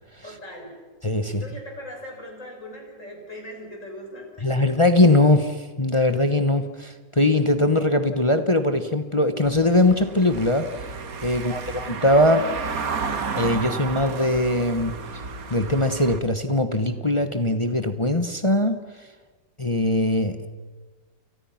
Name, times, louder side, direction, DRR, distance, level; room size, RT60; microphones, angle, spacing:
voice 1, 0.2-0.8 1.2-4.7 11.3-12.0, left 1 dB, 40° left, 1 dB, 6.8 m, -40 dB
voice 2, 1.0-1.4 4.4-10.7 11.2-12.5 13.3-15.0 15.5-18.8 19.6-20.5, left 1 dB, 20° left, 8 dB, 1.1 m, -21 dB
Car passing by / Engine, 9.5-16.2, right 5 dB, 50° right, 1.8 m, -32 dB
29.5 x 29.5 x 5.9 m, 1.3 s
omnidirectional pair, 2.0 m